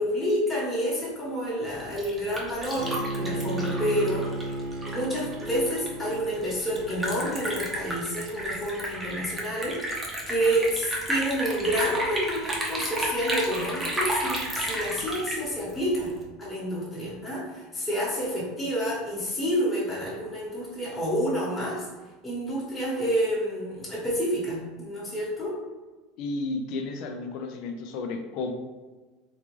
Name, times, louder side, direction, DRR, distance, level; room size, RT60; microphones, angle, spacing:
voice 1, 0.0-4.3 4.8-16.1 16.4-21.9 22.2-25.6, equal, 15° left, -9 dB, 1.2 m, -29 dB
Liquid, 1.7-16.2, right 1 dB, 15° right, 0.7 m, -32 dB
Bowed string instrument, 2.7-7.8, right 2 dB, 80° right, 0.4 m, -34 dB
voice 2, 26.2-28.5, left 3 dB, 60° left, 5 dB, 0.5 m, -32 dB
3.5 x 2.4 x 3.1 m, 1.3 s
supercardioid pair, 130°, 0 cm